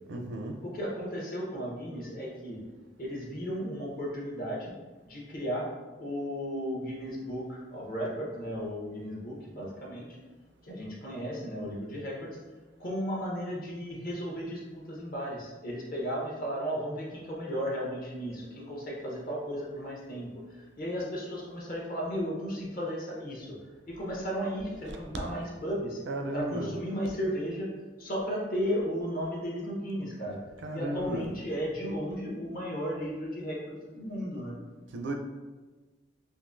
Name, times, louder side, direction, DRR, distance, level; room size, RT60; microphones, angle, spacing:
voice 1, 0.1-0.6 26.1-26.7 30.6-31.2 34.9-35.1, right 1 dB, 70° right, 4 dB, 0.5 m, -34 dB
voice 2, 0.6-2.6 3.0-4.7 5.0-5.7 6.0-10.2 10.6-12.4 12.8-23.6 23.9-26.0 26.3-27.7 28.0-34.6, equal, 50° left, -3 dB, 0.9 m, -35 dB
3.7 x 2.7 x 2.6 m, 1.3 s
head